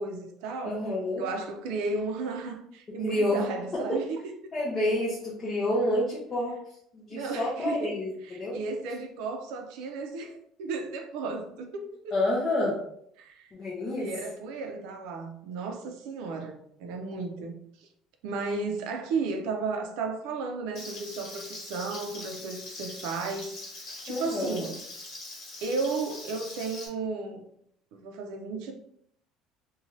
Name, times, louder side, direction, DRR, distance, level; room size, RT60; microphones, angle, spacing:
voice 1, 0.0-0.8 1.2-4.2 7.1-7.9 8.3-12.1 13.2-13.5 14.0-17.9 18.2-24.8 25.6-27.4 27.9-28.7, right 4 dB, 75° right, 0.5 m, -34 dB
voice 2, 0.6-1.2 3.0-3.4 3.7-4.0 4.5-8.6 12.1-12.8 13.5-14.1 24.1-24.7, left 1 dB, 25° left, 0.6 m, -29 dB
Frying (food), 20.7-26.9, left 2 dB, 45° left, 1.2 m, -42 dB
2.6 x 2.3 x 3.1 m
cardioid pair, 165°, 0 cm